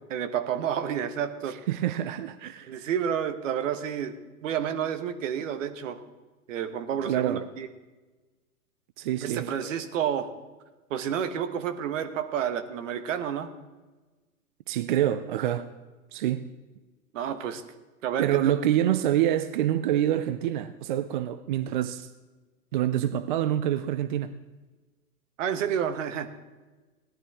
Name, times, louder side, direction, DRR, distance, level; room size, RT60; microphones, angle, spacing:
voice 1, 0.1-1.5 2.7-4.1 4.4-6.0 6.5-7.7 9.2-10.3 10.9-13.5 17.1-17.6 18.0-18.5 25.4-26.3, right 8 dB, 55° right, 1.3 m, -30 dB
voice 2, 1.5-2.7 7.0-7.5 9.0-9.5 14.7-15.7 16.1-16.5 18.2-22.1 22.7-24.3, right 11 dB, 35° right, 0.4 m, -26 dB
17.0 x 11.0 x 3.6 m
hypercardioid pair, 120°, 45 cm